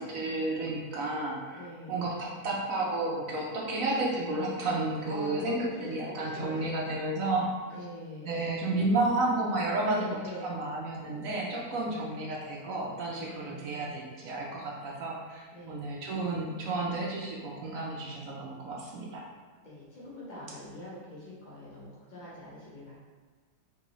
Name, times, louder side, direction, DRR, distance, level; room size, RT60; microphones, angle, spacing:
voice 1, 0.0-7.6 8.2-10.1 10.4-19.2, right 2 dB, 65° right, -3 dB, 0.8 m, -32 dB
voice 2, 1.5-2.1 5.1-7.0 7.7-8.5 9.8-10.6 11.7-12.0 13.3-13.9 15.5-15.9 19.6-23.0, left 1 dB, 70° left, -6 dB, 0.4 m, -43 dB
4.7 x 3.1 x 3.0 m, 1.4 s
omnidirectional pair, 2.0 m